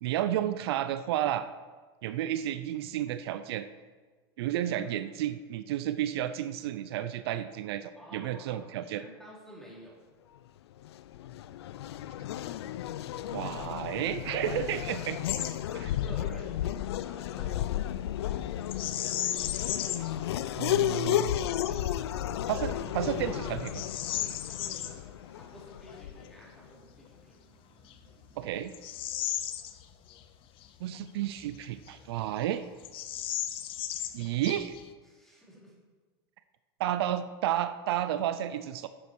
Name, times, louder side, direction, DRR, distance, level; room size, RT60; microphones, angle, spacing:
voice 1, 0.0-1.5 2.0-3.7 4.4-9.0 13.3-15.2 20.6-21.4 22.5-23.7 28.4-28.7 30.8-32.6 34.1-34.8 36.8-38.9, right 12 dB, 75° right, 12 dB, 0.6 m, -31 dB
voice 2, 8.0-8.7 9.0-10.0 14.2-15.2 15.6-16.7 17.0-18.5 21.6-22.1 22.8-23.1 23.4-23.6 24.3-25.0 25.3-27.4 31.9-32.1 35.0-35.7, equal, 5° left, -5 dB, 3.8 m, -51 dB
Race car auto racing / Accelerating revving vroom, 10.8-26.4, left 12 dB, 85° left, 0.5 m, -33 dB
Bird vocalization bird call bird song, 15.2-15.5 15.9-16.1 18.7-20.2 20.7-20.8 21.4-21.8 22.4-22.5 23.0-24.9 27.1-27.2 27.8-30.2 30.6-30.7 31.4-32.2 32.4-32.5 32.8-34.9, left 11 dB, 40° left, 0.8 m, -35 dB
Wind, 18.8-28.7, right 3 dB, 55° right, 2.2 m, -56 dB
10.5 x 8.4 x 4.7 m, 1.4 s
supercardioid pair, 125°, 13 cm